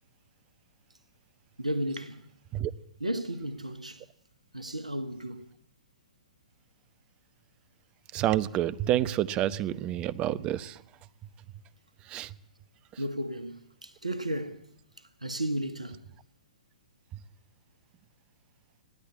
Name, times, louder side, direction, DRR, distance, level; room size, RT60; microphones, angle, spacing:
voice 1, 1.6-2.2 3.0-4.1 4.5-5.5 13.0-14.7 15.0-16.0, right 1 dB, 90° right, 1.7 m, -34 dB
voice 2, 8.1-10.8 12.0-12.4 12.9-13.0, right 12 dB, 30° right, 0.9 m, -28 dB
20.0 x 15.0 x 8.7 m
figure-of-eight pair, 115°, 4 cm